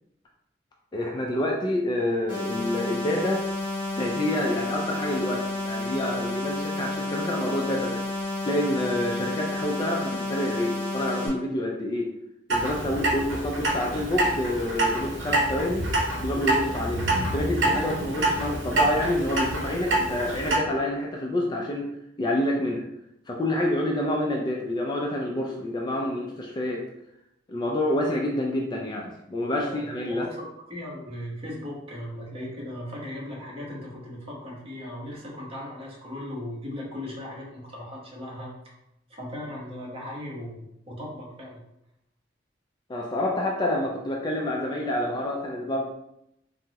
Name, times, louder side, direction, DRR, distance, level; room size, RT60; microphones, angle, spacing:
voice 1, 0.9-3.4 3.9-8.0 8.4-12.1 12.5-15.8 16.2-17.0 17.3-21.9 22.2-22.8 23.3-26.8 27.5-30.2 42.9-45.8, left 1 dB, 25° left, -1 dB, 0.3 m, -28 dB
sound 1, 2.3-11.3, left 2 dB, 5° right, 1.1 m, -31 dB
Clock, 12.5-20.6, right 1 dB, 80° right, 0.7 m, -26 dB
voice 2, 30.2-38.5 39.1-41.6, left 1 dB, 30° right, -4 dB, 0.9 m, -37 dB
3.4 x 2.0 x 2.8 m, 0.81 s
head